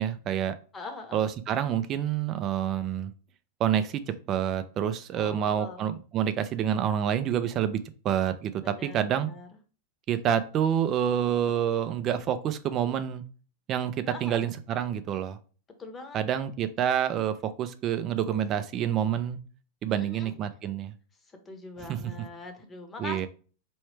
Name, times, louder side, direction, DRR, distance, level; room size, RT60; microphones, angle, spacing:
voice 1, 0.0-0.5 1.1-3.1 3.6-7.8 8.0-9.3 10.1-13.2 13.7-15.4 16.1-19.4 19.8-20.9 21.8-22.0 23.0-23.3, right 9 dB, 30° right, 0.5 m, -28 dB
voice 2, 0.7-1.2 5.1-5.8 8.6-9.5 14.1-14.4 15.8-16.2 19.9-20.3 21.5-23.3, left 3 dB, 15° left, 0.9 m, -42 dB
4.5 x 3.1 x 3.2 m
supercardioid pair, 140°, 0 cm